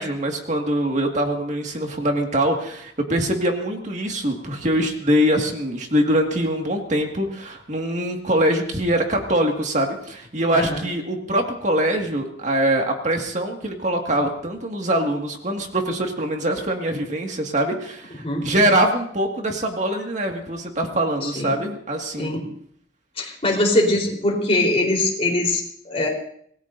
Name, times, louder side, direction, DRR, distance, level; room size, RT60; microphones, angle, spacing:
voice 1, 0.0-22.3, right 1 dB, 40° right, 2 dB, 2.0 m, -23 dB
voice 2, 10.5-10.8 18.2-18.5 21.2-21.5 22.2-22.4 23.2-26.1, left 1 dB, 35° left, 0 dB, 3.9 m, -22 dB
26.5 x 19.5 x 2.7 m, 0.63 s
head